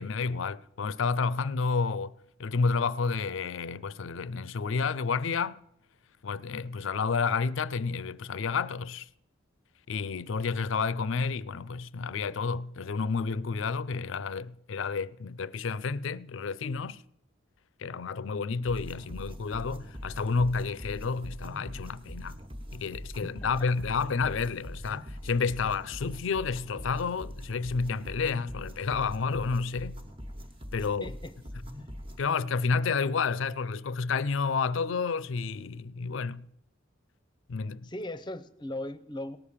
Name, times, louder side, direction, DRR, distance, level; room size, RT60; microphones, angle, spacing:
voice 1, 0.0-2.1 2.4-5.6 6.2-9.1 9.9-17.0 17.8-22.4 22.7-30.0 30.7-31.1 32.2-36.5 37.5-37.9, left 5 dB, 70° left, 0.5 m, -30 dB
sound 1, 18.7-32.3, equal, 25° right, 1.2 m, -42 dB
voice 2, 23.2-23.7 31.0-31.5 37.8-39.4, left 1 dB, 20° left, 0.6 m, -39 dB
18.0 x 6.7 x 7.2 m
head